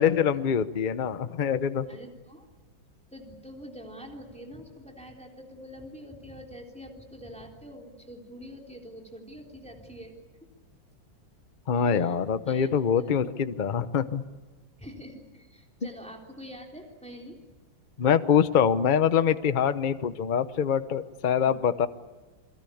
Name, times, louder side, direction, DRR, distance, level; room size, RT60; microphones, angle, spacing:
voice 1, 0.0-1.9 11.7-14.2 18.0-21.9, left 7 dB, 50° left, 12 dB, 0.5 m, -24 dB
voice 2, 1.9-2.5 3.1-10.5 11.7-12.2 12.5-13.0 14.8-17.4 21.4-21.7, equal, 5° left, 1 dB, 3.6 m, -45 dB
29.0 x 22.0 x 8.6 m, 1.2 s
omnidirectional pair, 2.2 m